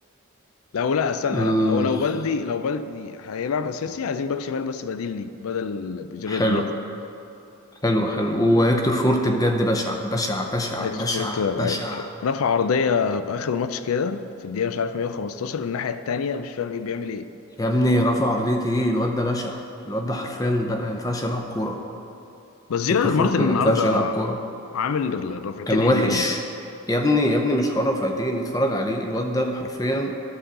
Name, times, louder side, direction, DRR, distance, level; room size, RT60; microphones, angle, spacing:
voice 1, 0.7-6.7 10.8-17.3 22.7-24.2 24.7-26.3, left 5 dB, 85° left, 11 dB, 0.4 m, -26 dB
voice 2, 1.3-2.0 6.3-6.6 7.8-12.1 17.6-21.8 22.9-24.4 25.7-26.4 26.9-30.1, equal, 15° left, 3 dB, 0.6 m, -23 dB
11.0 x 3.8 x 6.6 m, 2.9 s
head